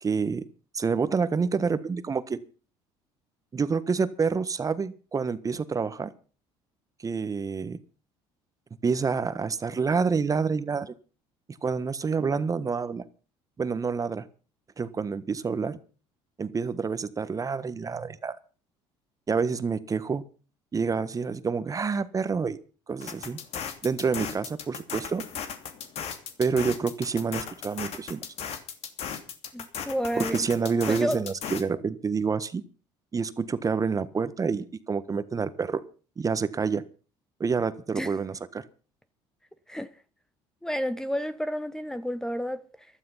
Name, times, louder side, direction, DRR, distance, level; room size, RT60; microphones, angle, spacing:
voice 1, 0.0-0.4 0.7-2.4 3.5-6.1 7.0-7.8 8.8-10.9 11.6-13.0 13.6-14.2 14.8-15.8 16.4-18.4 19.3-20.2 20.7-22.6 22.9-23.4 23.8-25.2 26.4-28.2 30.1-32.6 33.1-35.8 36.2-36.8 37.4-38.6, right 5 dB, 30° right, 1.3 m, -28 dB
sound 1, 23.0-31.6, left 7 dB, 60° left, 2.8 m, -36 dB
voice 2, 29.5-30.5 30.9-31.2 38.0-38.1 39.7-39.9 40.6-42.9, equal, 5° left, 1.0 m, -31 dB
15.0 x 12.5 x 5.7 m
supercardioid pair, 90°, 12 cm